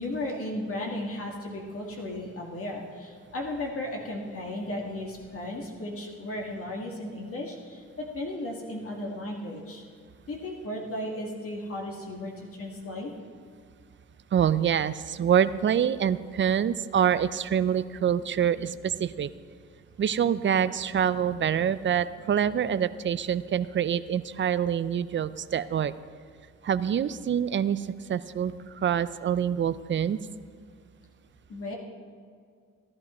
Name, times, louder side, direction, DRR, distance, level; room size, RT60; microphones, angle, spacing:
voice 1, 0.0-9.8 10.3-13.1 31.5-31.8, left 1 dB, 50° left, 0 dB, 1.9 m, -35 dB
voice 2, 14.3-19.3 20.0-25.9 26.6-30.2, right 8 dB, 40° right, 15 dB, 0.5 m, -26 dB
15.0 x 12.0 x 4.4 m, 2.1 s
cardioid pair, 90°, 30 cm